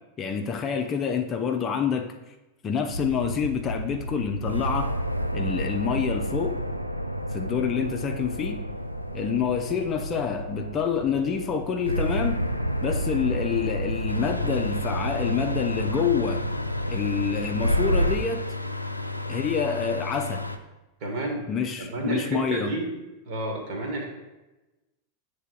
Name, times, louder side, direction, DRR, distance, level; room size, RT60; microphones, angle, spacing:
voice 1, 0.2-2.3 2.6-4.9 5.3-6.6 7.3-8.6 9.1-12.4 12.8-16.4 16.9-18.4 19.3-20.4 21.5-22.7, left 7 dB, 25° left, 4 dB, 0.5 m, -27 dB
sound 1, 2.9-18.2, equal, 90° right, 0.4 m, -30 dB
sound 2, 14.1-20.6, left 2 dB, 85° left, 0.4 m, -33 dB
voice 2, 21.0-21.5 21.8-22.9 23.2-24.1, right 2 dB, 45° right, 1 dB, 1.6 m, -30 dB
8.1 x 3.4 x 4.5 m, 1.0 s
figure-of-eight pair, 90°, 0 cm